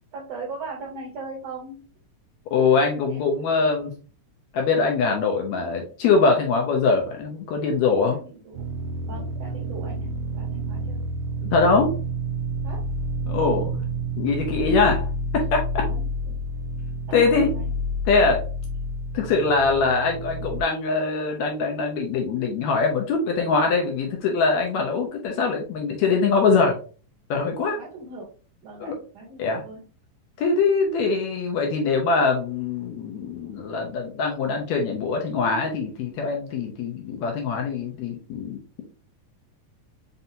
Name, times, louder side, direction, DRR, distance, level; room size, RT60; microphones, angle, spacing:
voice 1, 0.1-1.9 3.1-3.7 7.9-8.7 9.0-11.0 12.6-12.9 14.5-15.0 15.8-16.4 17.1-17.7 27.6-28.3 28.6-29.8, right 3 dB, 60° right, -3 dB, 1.9 m, -40 dB
voice 2, 2.5-3.9 4.5-8.2 11.4-11.9 13.3-13.8 14.2-15.0 15.3-15.9 17.1-17.5 18.1-18.4 19.1-26.8 27.3-27.8 28.8-28.9 29.4-29.6 30.4-38.8, left 4 dB, 75° left, 2 dB, 1.7 m, -23 dB
sound 1, 8.5-20.6, right 1 dB, 85° right, 1.6 m, -29 dB
5.5 x 2.7 x 2.6 m, 0.38 s
omnidirectional pair, 3.8 m